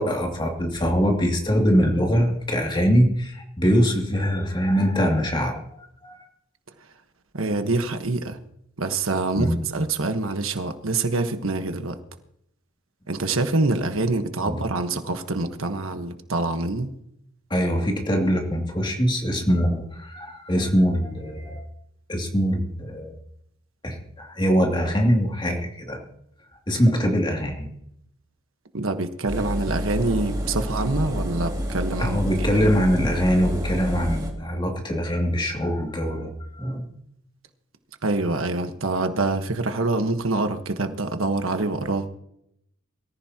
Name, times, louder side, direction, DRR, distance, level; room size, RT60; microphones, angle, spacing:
voice 1, 0.0-5.6 6.0-6.2 9.4-9.6 14.4-14.6 17.5-21.7 22.1-23.2 23.8-26.1 26.7-27.7 32.0-36.9, equal, 25° left, 2.5 m, -23 dB
voice 2, 7.3-8.4 8.8-12.0 13.1-16.9 28.7-32.2 38.0-42.1, right 2 dB, 90° right, 1.3 m, -25 dB
Engine, 29.3-34.3, equal, 20° right, 2.4 m, -28 dB
23.0 x 14.5 x 2.9 m
head